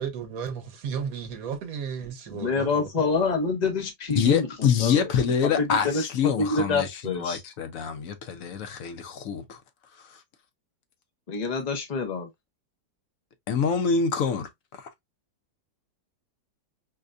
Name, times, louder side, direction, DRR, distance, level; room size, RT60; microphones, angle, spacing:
voice 1, 0.0-2.9, right 7 dB, 60° right, 1.1 m, -34 dB
voice 2, 2.3-4.5 4.8-5.1 5.4-7.4 11.3-12.3, left 4 dB, 85° left, 0.3 m, -27 dB
voice 3, 4.1-9.6 10.1-10.2 13.5-14.5 14.8-14.9, left 6 dB, 65° left, 0.8 m, -26 dB
5.0 x 2.2 x 2.4 m
omnidirectional pair, 2.0 m